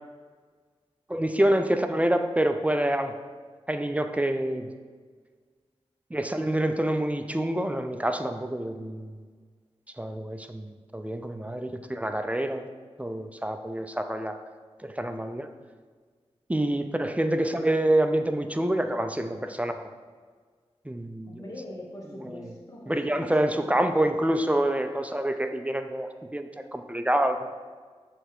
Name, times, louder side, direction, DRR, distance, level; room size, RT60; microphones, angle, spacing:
voice 1, 1.1-3.1 3.7-4.7 6.1-9.2 10.0-12.7 13.0-14.4 14.8-15.5 16.5-19.9 20.8-21.4 22.2-22.5 22.9-27.5, right 1 dB, 10° right, 7 dB, 0.4 m, -27 dB
voice 2, 21.2-23.8, left 1 dB, 30° left, -4 dB, 1.1 m, -43 dB
6.7 x 3.3 x 4.6 m, 1.5 s
wide cardioid pair, 65°, 11 cm